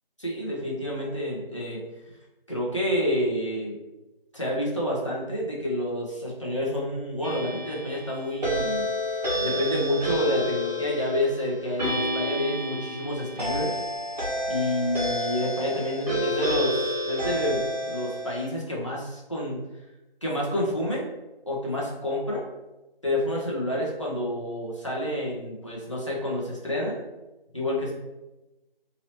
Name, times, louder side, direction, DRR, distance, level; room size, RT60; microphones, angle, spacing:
voice 1, 0.2-1.8 2.5-3.8 4.3-8.9 9.4-13.8 14.5-19.6 20.2-21.1 21.5-22.5 23.0-27.0 27.5-27.9, equal, 35° left, -4 dB, 0.6 m, -29 dB
sound 1, 7.2-18.5, equal, 45° right, 1.2 m, -29 dB
2.8 x 2.8 x 3.0 m, 1.0 s
figure-of-eight pair, 170°, 29 cm